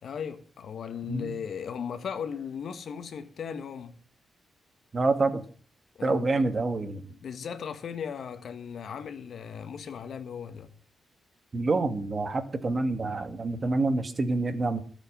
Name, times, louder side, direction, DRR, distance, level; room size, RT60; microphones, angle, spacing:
voice 1, 0.0-4.0 6.0-6.5 7.1-10.7, left 7 dB, 70° left, 1.6 m, -37 dB
voice 2, 1.1-1.4 4.9-5.4 6.0-7.0 11.5-14.8, right 3 dB, 40° right, 2.0 m, -27 dB
13.5 x 7.6 x 7.4 m
cardioid pair, 85°, 0 cm